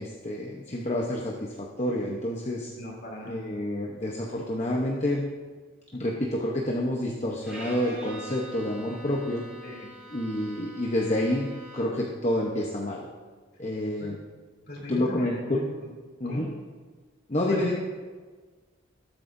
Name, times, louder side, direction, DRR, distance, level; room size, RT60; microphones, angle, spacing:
voice 1, 0.0-2.7 3.2-5.2 5.9-9.4 10.1-13.0 13.6-14.2 14.9-15.6 16.2-16.5 17.3-17.8, left 1 dB, 35° left, -2 dB, 1.0 m, -28 dB
voice 2, 2.8-3.5 9.6-9.9 14.0-14.1 14.7-15.9 16.2-16.4 17.4-17.8, equal, 50° left, -2 dB, 3.0 m, -38 dB
Bowed string instrument, 7.4-12.1, equal, 5° right, 3.4 m, -44 dB
18.5 x 8.8 x 2.7 m, 1.4 s
head